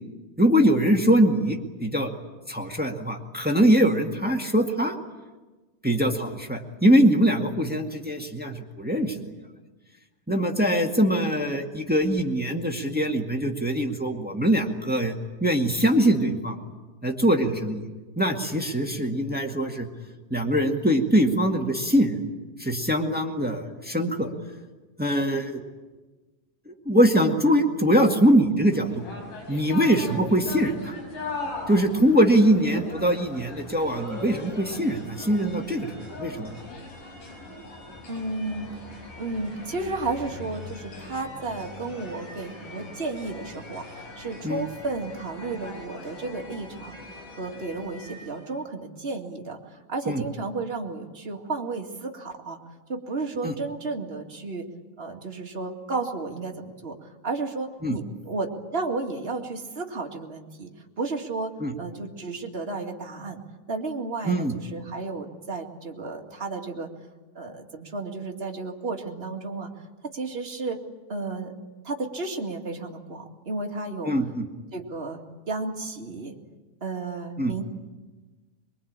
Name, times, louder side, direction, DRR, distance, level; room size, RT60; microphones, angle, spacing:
voice 1, 0.4-2.1 2.5-5.0 5.8-9.2 10.3-15.1 15.4-16.6 17.0-17.8 18.2-19.9 20.3-22.2 22.6-24.3 25.0-25.6 26.6-29.0 29.5-30.9 31.7-35.9 36.2-36.5 44.4-44.6 50.1-50.2 53.4-53.5 57.8-57.9 61.6-61.7 64.2-64.5 74.0-74.5 77.4-77.5, equal, 5° right, 3 dB, 0.8 m, -22 dB
sound 1, 28.7-48.5, left 2 dB, 70° left, 7.4 m, -40 dB
voice 2, 38.1-38.7 39.2-47.0 47.4-52.6 52.9-54.6 55.0-57.0 57.2-60.7 61.0-61.5 61.8-66.9 67.3-69.7 70.1-70.8 71.1-71.5 71.8-74.1 74.7-75.2 75.5-76.4 76.8-77.6, right 3 dB, 20° right, 1 dB, 1.8 m, -33 dB
23.5 x 23.5 x 8.9 m, 1.2 s
omnidirectional pair, 3.8 m